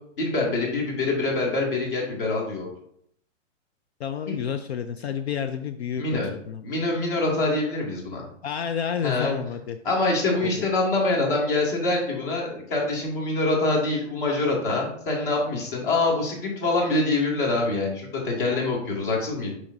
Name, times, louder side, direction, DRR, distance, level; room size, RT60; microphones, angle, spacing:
voice 1, 0.2-2.7 4.3-4.4 6.0-6.3 6.6-8.2 9.0-9.3 9.8-19.5, left 2 dB, 40° left, -1 dB, 2.2 m, -25 dB
voice 2, 4.0-6.6 8.4-9.8 10.4-10.5, left 8 dB, 55° left, 8 dB, 0.5 m, -30 dB
7.0 x 5.0 x 2.7 m, 0.68 s
hypercardioid pair, 155°, 38 cm